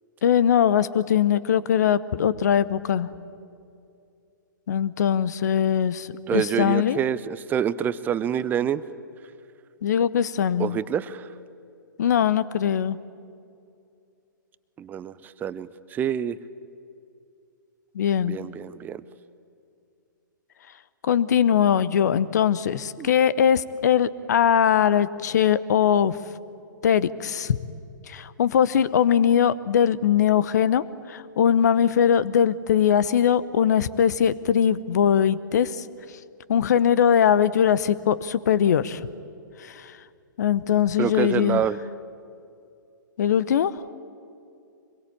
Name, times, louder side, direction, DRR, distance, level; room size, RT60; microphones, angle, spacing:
voice 1, 0.2-3.1 4.7-7.0 9.8-10.8 12.0-13.0 17.9-18.4 21.0-26.2 26.8-27.6 28.1-35.8 36.5-39.0 39.6-39.9 40.4-41.6 43.2-43.7, left 9 dB, 55° left, 18 dB, 0.9 m, -21 dB
voice 2, 6.3-8.8 10.6-11.3 14.8-16.4 18.2-19.0 23.0-23.1 41.0-41.8, right 9 dB, 15° right, 16 dB, 0.7 m, -27 dB
25.0 x 21.5 x 8.7 m, 2.5 s
figure-of-eight pair, 115°, 11 cm